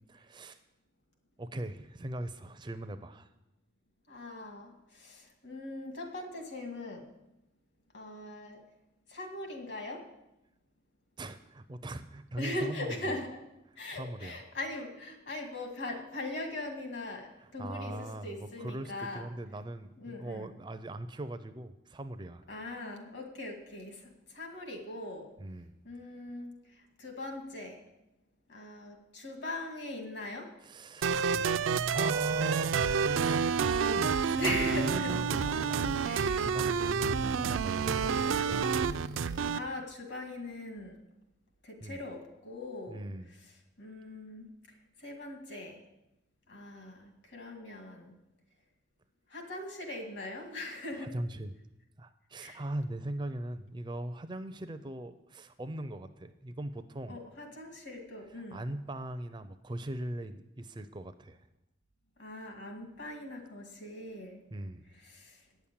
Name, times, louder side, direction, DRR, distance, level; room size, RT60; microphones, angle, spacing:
voice 1, 0.1-0.6 1.4-3.3 11.2-13.2 13.9-14.4 17.4-22.4 25.4-25.7 30.6-31.2 31.9-36.1 36.3-38.6 41.8-42.0 42.9-43.3 50.9-51.6 52.0-57.2 58.3-61.4 64.5-64.8, right 1 dB, 25° right, 10 dB, 0.4 m, -40 dB
voice 2, 4.1-7.1 7.9-8.6 9.1-10.0 12.4-13.4 13.8-19.3 20.0-20.5 22.5-25.3 25.8-26.5 27.0-27.8 28.5-30.5 34.3-35.1 36.0-36.5 39.5-41.0 41.6-43.0 43.8-44.5 45.0-45.8 46.5-48.1 49.3-51.1 52.4-52.6 57.1-58.6 62.2-64.4 65.0-65.4, left 1 dB, 60° left, 3 dB, 2.2 m, -40 dB
sound 1, 31.0-39.6, right 6 dB, 85° right, 0.4 m, -29 dB
9.2 x 7.2 x 8.5 m, 0.92 s
head